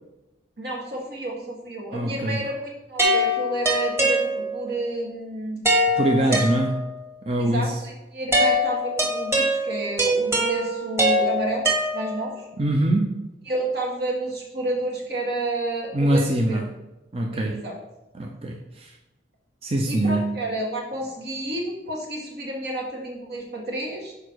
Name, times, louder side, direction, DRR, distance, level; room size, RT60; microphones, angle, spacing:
voice 1, 0.6-5.6 6.3-6.4 7.4-12.5 13.5-16.6 17.3-17.7 19.9-24.1, right 2 dB, 60° right, -1 dB, 1.9 m, -30 dB
voice 2, 1.9-2.4 5.9-6.7 7.3-7.8 12.6-13.3 15.9-16.7 17.1-17.6 18.1-18.9 19.6-20.4, right 1 dB, 35° right, 1 dB, 0.6 m, -23 dB
sound 1, 3.0-4.8 5.7-7.1 8.3-12.4, equal, 15° right, 1.6 m, -23 dB
6.7 x 5.0 x 4.7 m, 0.99 s
head